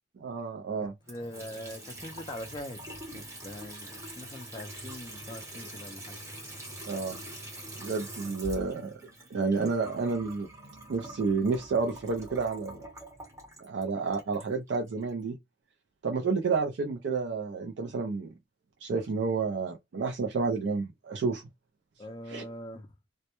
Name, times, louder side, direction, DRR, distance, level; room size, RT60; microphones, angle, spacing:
voice 1, 0.2-0.9 6.9-7.2 7.8-8.9 9.3-10.5 10.9-12.8 13.6-15.4 16.0-18.3 18.8-21.4 22.3-22.4, right 4 dB, 80° right, 0.4 m, -30 dB
voice 2, 0.8-2.8 3.1-6.2 22.0-22.9, left 1 dB, 25° left, 0.3 m, -42 dB
Water tap faucet / Sink (filling or washing) / Trickle dribble, 1.0-15.1, right 1 dB, 15° right, 0.7 m, -44 dB
2.1 x 2.0 x 2.8 m
head